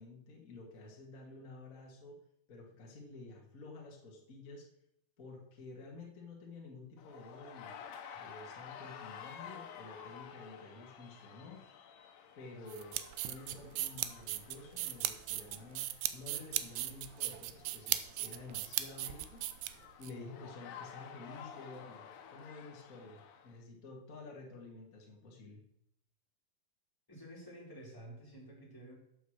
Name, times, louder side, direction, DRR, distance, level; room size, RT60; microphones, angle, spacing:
voice 1, 0.0-2.2 2.5-4.6 5.2-7.7 8.2-11.6 12.3-13.0 13.2-15.9 16.1-19.4 20.0-22.0 22.3-25.6, left 3 dB, 40° left, -1 dB, 1.1 m, -51 dB
sound 1, 7.0-23.6, left 8 dB, 70° left, 2.4 m, -52 dB
sound 2, 12.7-20.1, right 14 dB, 80° right, 2.2 m, -37 dB
voice 2, 27.1-28.9, right 1 dB, 5° left, -4 dB, 2.9 m, -51 dB
8.2 x 8.0 x 6.4 m, 0.76 s
omnidirectional pair, 4.6 m